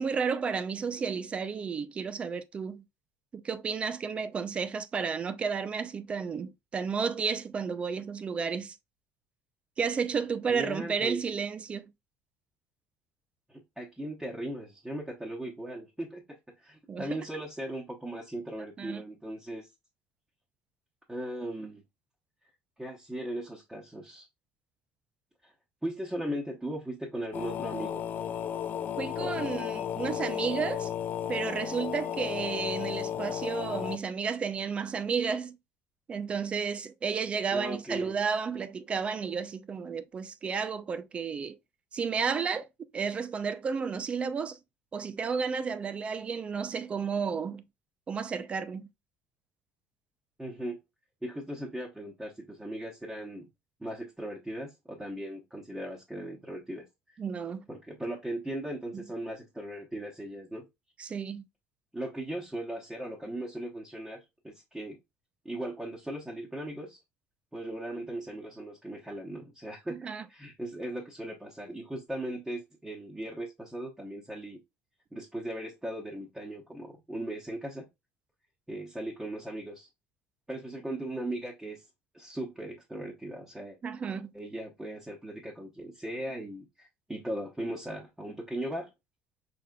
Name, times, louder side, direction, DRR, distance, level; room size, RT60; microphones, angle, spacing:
voice 1, 0.0-2.9 3.3-8.8 9.8-11.9 16.9-17.2 18.8-19.0 29.0-30.9 31.3-35.6 36.1-41.6 41.9-42.7 42.9-44.6 44.9-47.6 48.1-48.9 57.2-57.7 58.9-59.0 61.0-61.5 69.9-70.2 83.8-84.3, right 6 dB, 25° right, 0.4 m, -32 dB
voice 2, 10.5-11.2 13.5-19.7 21.1-21.8 22.8-24.3 25.4-25.5 25.8-28.0 29.2-29.6 37.5-38.2 50.4-50.8 51.2-53.5 53.8-57.2 57.7-60.6 61.9-65.0 65.4-67.0 67.5-70.0 70.3-74.6 75.1-77.9 78.7-79.9 80.5-81.8 82.1-83.8 84.3-88.9, right 1 dB, 5° right, 1.0 m, -38 dB
sound 1, 27.3-34.0, left 10 dB, 35° left, 0.4 m, -34 dB
5.0 x 3.4 x 2.3 m
cardioid pair, 145°, 5 cm